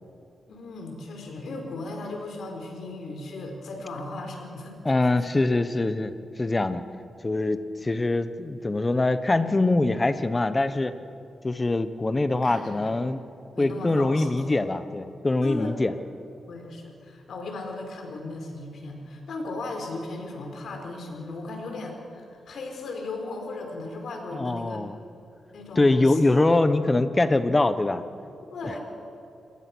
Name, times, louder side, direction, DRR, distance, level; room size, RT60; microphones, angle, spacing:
voice 1, 0.5-4.8 12.3-12.9 13.5-14.6 15.4-15.7 16.5-24.8 25.5-26.2 26.6-26.7 28.5-28.8, left 2 dB, 70° left, 3 dB, 4.6 m, -36 dB
voice 2, 4.8-6.1 6.4-6.8 7.2-10.9 11.4-13.2 13.6-15.9 24.3-25.0 25.8-28.0 28.6-28.8, left 2 dB, 20° left, 11 dB, 1.1 m, -23 dB
27.0 x 21.0 x 6.2 m, 2.7 s
wide cardioid pair, 130°, 0 cm